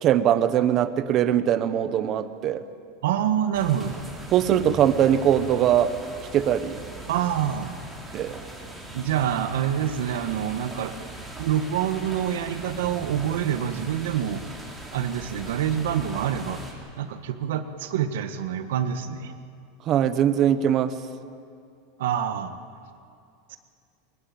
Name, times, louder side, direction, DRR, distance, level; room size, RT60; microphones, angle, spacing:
voice 1, 0.0-2.6 4.3-5.9 6.3-6.7 8.1-8.3 19.9-20.9, right 10 dB, 30° right, 12 dB, 1.0 m, -21 dB
voice 2, 3.0-4.0 4.7-4.8 7.1-7.7 8.9-10.9 11.4-14.4 14.9-16.6 16.9-19.3 22.0-22.5 23.5-23.6, right 9 dB, 80° right, 9 dB, 1.6 m, -26 dB
sound 1, 3.5-16.7, right 1 dB, 5° right, 3.4 m, -40 dB
23.0 x 20.5 x 8.9 m, 2.3 s
supercardioid pair, 170°, 0 cm